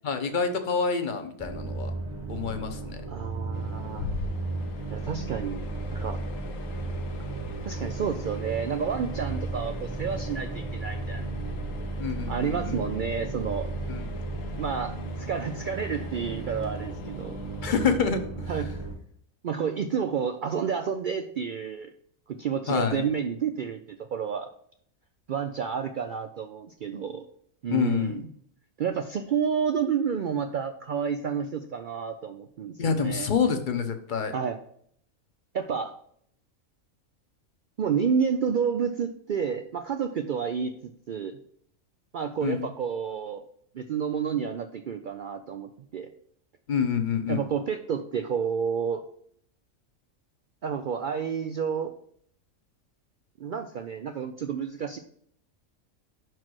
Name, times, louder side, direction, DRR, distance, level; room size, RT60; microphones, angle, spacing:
voice 1, 0.0-1.9 2.3-3.0 12.0-12.8 13.9-14.1 17.6-18.5 22.7-23.0 27.7-28.2 32.8-34.3 42.4-42.7 46.7-47.4, left 6 dB, 40° left, 7 dB, 0.8 m, -27 dB
sound 1, 1.4-19.0, right 2 dB, 10° right, 1.0 m, -34 dB
voice 2, 3.1-4.1 4.9-5.6 5.9-6.2 7.6-11.3 12.3-13.7 14.6-17.4 18.5-18.7 19.4-21.9 22.3-24.5 25.3-27.2 27.6-28.3 28.8-33.3 34.3-34.6 35.5-35.9 37.8-41.4 42.1-43.4 43.7-46.1 47.3-49.0 50.6-51.9 53.4-55.0, right 7 dB, 85° right, 7 dB, 0.4 m, -30 dB
sound 2, 3.5-18.0, left 4 dB, 75° left, 1.1 m, -43 dB
5.9 x 4.7 x 6.1 m, 0.65 s
omnidirectional pair, 1.4 m